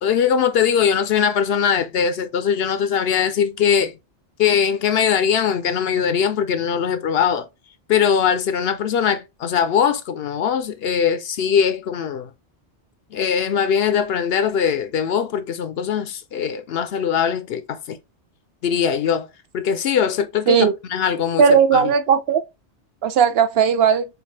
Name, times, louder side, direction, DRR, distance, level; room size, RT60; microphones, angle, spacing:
voice 1, 0.0-3.9 4.4-7.5 7.9-12.3 13.1-18.0 18.6-19.3 19.5-21.9, left 7 dB, 65° left, 0.7 m, -21 dB
voice 2, 21.4-22.4 23.0-24.0, right 7 dB, 65° right, 0.7 m, -16 dB
7.0 x 2.4 x 3.1 m
omnidirectional pair, 1.2 m